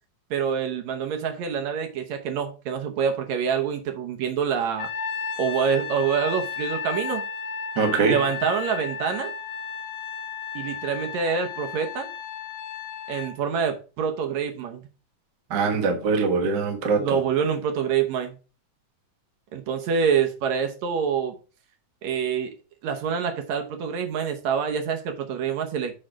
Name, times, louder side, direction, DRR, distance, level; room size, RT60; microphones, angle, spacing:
voice 1, 0.3-4.9 5.4-7.2 8.0-9.3 10.6-12.1 13.1-14.8 17.0-18.4 19.5-21.4 22.0-22.5 22.8-26.0, right 7 dB, 70° right, 2.0 m, -26 dB
Trumpet, 4.8-13.3, left 6 dB, 80° left, 2.3 m, -33 dB
voice 2, 7.8-8.2 15.5-17.1, right 4 dB, 55° right, 1.3 m, -22 dB
6.6 x 3.6 x 6.0 m
omnidirectional pair, 3.6 m